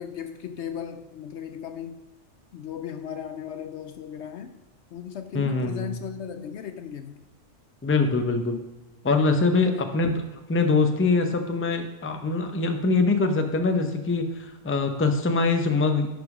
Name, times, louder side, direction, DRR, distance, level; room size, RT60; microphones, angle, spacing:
voice 1, 0.0-2.0 2.5-4.6 4.9-7.2 9.6-9.8, left 8 dB, 65° left, 9 dB, 0.8 m, -36 dB
voice 2, 5.3-5.9 7.8-8.6 9.0-10.2 10.5-16.1, left 3 dB, 15° left, 5 dB, 0.6 m, -23 dB
11.0 x 5.3 x 4.9 m, 1.1 s
omnidirectional pair, 1.4 m